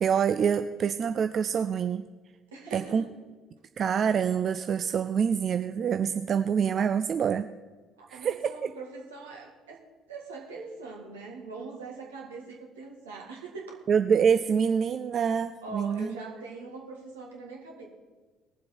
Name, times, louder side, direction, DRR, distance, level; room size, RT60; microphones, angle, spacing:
voice 1, 0.0-2.0 2.7-3.1 3.8-7.5 8.1-8.7 13.9-16.1, right 7 dB, 45° right, 10 dB, 0.4 m, -26 dB
voice 2, 2.5-3.1 8.0-9.8 10.1-13.8 15.6-17.8, right 3 dB, 75° right, -1 dB, 1.9 m, -42 dB
19.5 x 7.5 x 4.4 m, 1.3 s
figure-of-eight pair, 50°, 0 cm